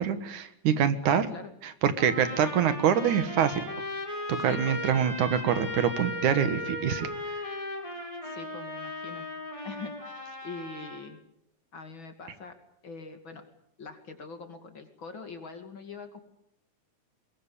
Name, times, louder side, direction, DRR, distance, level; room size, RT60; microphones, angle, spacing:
voice 1, 0.0-1.3 1.6-3.6 4.3-7.1, right 8 dB, 75° right, 11 dB, 2.9 m, -25 dB
voice 2, 1.0-1.5 4.5-5.1 8.2-9.3 9.6-11.2 11.7-12.6 12.8-13.4 13.8-16.2, left 4 dB, 40° left, 6 dB, 3.0 m, -43 dB
Trumpet, 2.0-11.0, left 1 dB, 10° left, 7.1 m, -37 dB
23.0 x 22.0 x 8.6 m, 0.75 s
omnidirectional pair, 3.6 m